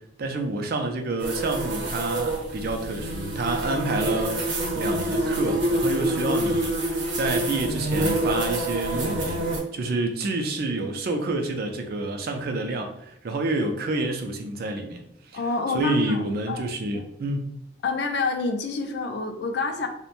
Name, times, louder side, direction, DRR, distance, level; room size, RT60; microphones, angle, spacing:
voice 1, 0.2-4.5 4.7-6.7 7.1-15.4 15.7-17.5, right 2 dB, 55° right, 4 dB, 0.4 m, -28 dB
sound 1, 1.2-9.6, right 1 dB, 80° right, 0.7 m, -26 dB
voice 2, 15.3-16.7 17.8-19.9, left 3 dB, 60° left, 5 dB, 0.4 m, -28 dB
2.9 x 2.1 x 2.5 m, 0.77 s
head